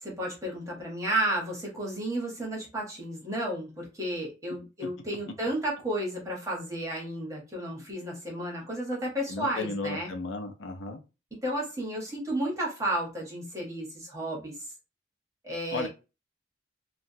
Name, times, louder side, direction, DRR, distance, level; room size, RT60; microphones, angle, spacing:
voice 1, 0.0-10.1 11.4-14.7 15.4-15.9, right 1 dB, 15° right, -2 dB, 1.0 m, -32 dB
voice 2, 9.3-11.0 15.7-15.9, left 3 dB, 80° left, 5 dB, 0.5 m, -34 dB
2.9 x 2.2 x 2.7 m, 0.29 s
head